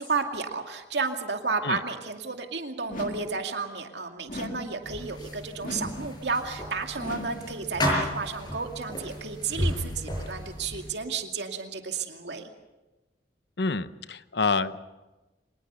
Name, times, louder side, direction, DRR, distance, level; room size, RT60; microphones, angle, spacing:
voice 1, 0.0-12.5, right 4 dB, 80° right, 4 dB, 2.4 m, -32 dB
sound 1, 2.9-3.4 4.3-4.8 5.6-6.1 7.0-7.5, left 1 dB, 50° left, 1.9 m, -37 dB
sound 2, 4.8-10.9, equal, 25° left, 6.8 m, -33 dB
voice 2, 13.6-14.8, left 4 dB, 75° left, 13 dB, 0.9 m, -27 dB
25.0 x 20.0 x 6.9 m, 1.1 s
head